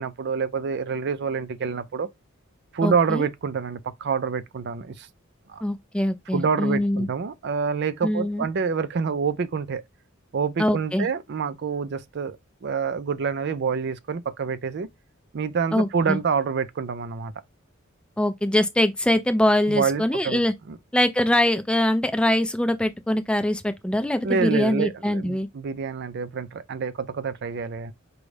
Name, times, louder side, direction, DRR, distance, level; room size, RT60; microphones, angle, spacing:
voice 1, 0.0-2.1 2.7-5.1 5.5-5.6 6.3-9.8 10.3-12.4 12.6-14.9 15.3-17.3 19.7-20.4 20.7-20.8 24.2-27.9, right 5 dB, 55° right, 0.4 m, -27 dB
voice 2, 2.8-3.3 5.6-7.1 8.0-8.5 10.6-11.1 15.7-16.2 18.2-20.5 20.9-25.5, left 1 dB, 5° left, 0.4 m, -23 dB
5.1 x 2.3 x 3.2 m
head